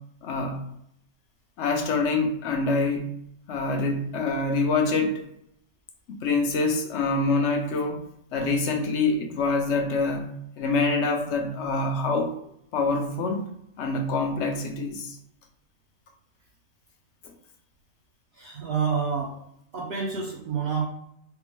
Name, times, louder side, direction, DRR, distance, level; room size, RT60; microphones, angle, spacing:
voice 1, 0.2-0.6 1.6-3.1 3.5-5.3 6.1-10.3 10.6-12.3 12.7-13.5 13.8-15.2, left 3 dB, 65° left, 3 dB, 0.9 m, -25 dB
voice 2, 18.3-19.3 19.7-20.9, right 6 dB, 55° right, -4 dB, 0.7 m, -28 dB
3.6 x 2.1 x 3.0 m, 0.73 s
omnidirectional pair, 1.4 m